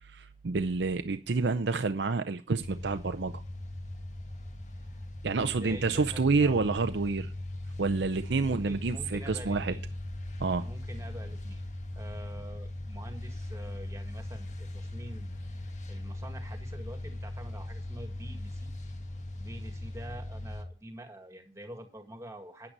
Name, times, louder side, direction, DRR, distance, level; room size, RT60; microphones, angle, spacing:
voice 1, 0.0-3.4 5.2-7.3 7.8-9.7 10.4-10.7, right 4 dB, 85° right, 0.6 m, -28 dB
sound 1, 2.6-20.6, left 1 dB, 40° left, 1.6 m, -39 dB
voice 2, 4.7-5.0 5.4-6.6 8.4-9.9 10.6-11.6 12.0-15.3 15.9-18.7 19.4-22.7, right 1 dB, 15° right, 1.8 m, -46 dB
9.7 x 8.8 x 5.3 m
head